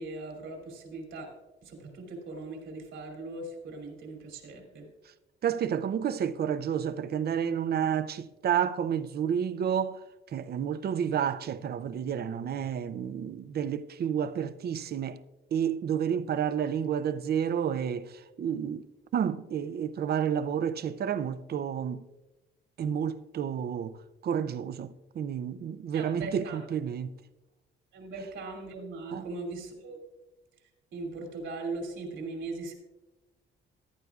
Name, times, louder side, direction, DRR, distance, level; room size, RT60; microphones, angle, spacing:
voice 1, 0.0-1.3 1.6-4.9 25.9-26.6 27.9-30.0 30.9-32.7, right 3 dB, 80° right, 2.8 m, -39 dB
voice 2, 5.4-10.0 10.3-15.2 15.5-18.9 19.1-22.1 22.8-24.0 24.2-27.1 29.1-29.2, right 8 dB, 55° right, 0.6 m, -30 dB
15.0 x 11.0 x 2.4 m
cardioid pair, 90°, 20 cm